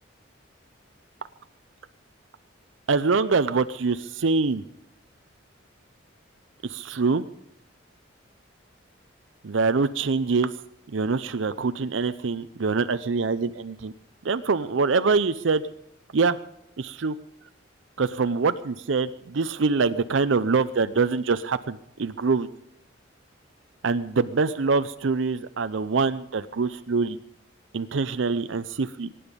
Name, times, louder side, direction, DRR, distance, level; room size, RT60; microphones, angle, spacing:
voice 1, 2.9-4.6 6.6-7.2 9.4-10.5 10.9-13.9 14.2-15.6 16.1-16.4 16.8-17.1 18.0-22.5 23.8-27.2 27.7-29.1, right 4 dB, 75° right, 11 dB, 0.6 m, -24 dB
23.0 x 10.0 x 5.2 m, 0.77 s
head